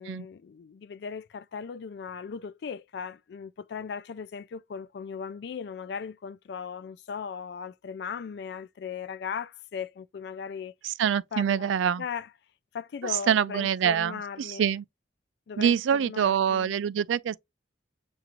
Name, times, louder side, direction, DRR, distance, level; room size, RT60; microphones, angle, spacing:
voice 1, 0.0-10.7 11.3-11.7 12.0-12.3 12.7-14.7 15.5-16.7, left 6 dB, 60° left, 0.3 m, -38 dB
voice 2, 10.8-12.0 13.0-14.8 15.6-17.4, right 8 dB, 80° right, 0.3 m, -25 dB
7.0 x 2.5 x 2.9 m
head